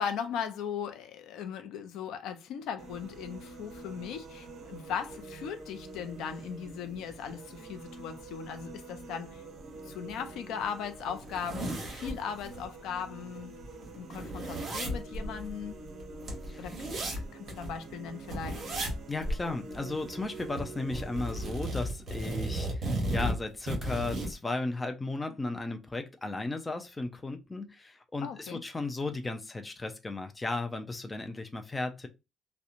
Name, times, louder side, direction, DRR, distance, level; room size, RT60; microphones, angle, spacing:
voice 1, 0.0-9.4 9.9-13.5 14.0-15.8 16.6-16.8 17.3-18.6 28.2-28.6, left 7 dB, 80° left, 0.4 m, -38 dB
sound 1, 2.8-21.8, right 3 dB, 55° right, 0.6 m, -47 dB
sound 2, 10.1-10.2 10.6-10.7 11.0-12.6 13.0-13.1 13.4-17.7 18.3-19.0 19.2-19.4 19.7-20.6 20.9-24.3, right 1 dB, 40° right, 1.0 m, -35 dB
voice 2, 19.1-32.1, left 2 dB, 15° left, 0.3 m, -35 dB
2.8 x 2.1 x 2.4 m
cardioid pair, 155°, 0 cm